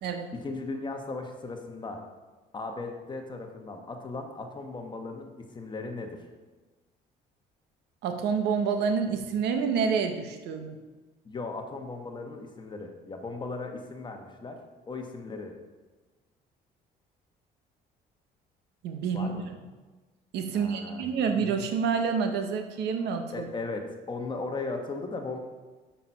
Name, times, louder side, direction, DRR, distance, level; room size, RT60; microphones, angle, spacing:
voice 1, 0.3-2.0 2.5-6.2 11.2-14.6 14.9-15.6 19.1-19.4 20.5-21.0 23.3-25.4, left 3 dB, 25° left, 4 dB, 1.2 m, -37 dB
voice 2, 8.0-10.8 18.8-19.4 20.3-23.5, right 6 dB, 80° right, 6 dB, 1.0 m, -28 dB
7.2 x 5.7 x 5.6 m, 1.3 s
cardioid pair, 110°, 17 cm